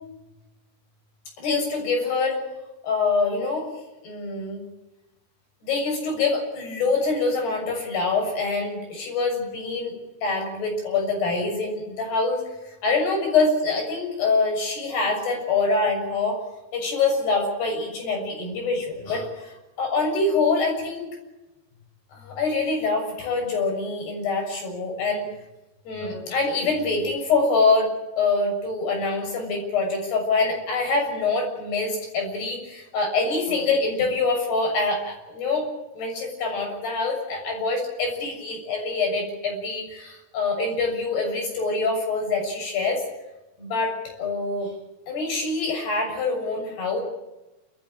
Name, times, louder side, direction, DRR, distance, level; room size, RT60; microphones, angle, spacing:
voice 1, 1.4-2.4 2.8-3.7 4.0-4.6 5.6-9.9 10.2-16.4 16.7-21.1 22.1-25.3 25.9-35.7 35.9-43.0 43.6-44.7 45.1-47.0, left 3 dB, 85° left, 2 dB, 8.9 m, -25 dB
29.0 x 14.5 x 9.0 m, 1.0 s
omnidirectional pair, 4.6 m